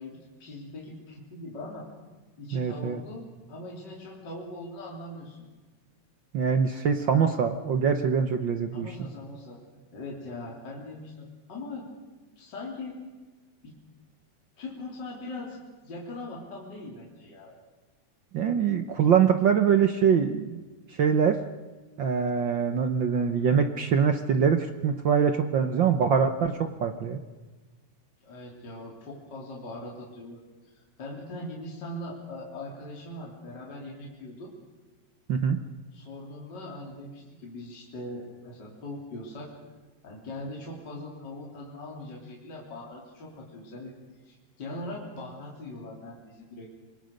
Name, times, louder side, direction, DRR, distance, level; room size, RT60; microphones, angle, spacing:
voice 1, 0.0-1.9 2.4-5.5 8.7-9.6 9.9-11.9 12.4-13.0 13.6-13.8 14.6-17.5 28.2-34.5 35.9-39.5 40.0-44.0 44.2-46.7, left 2 dB, 35° left, -2 dB, 3.9 m, -41 dB
voice 2, 2.5-3.0 6.3-8.9 18.3-20.6 20.9-21.4 22.0-27.2 35.3-35.6, right 7 dB, 70° right, 7 dB, 1.1 m, -24 dB
27.5 x 21.0 x 6.6 m, 1.3 s
omnidirectional pair, 3.5 m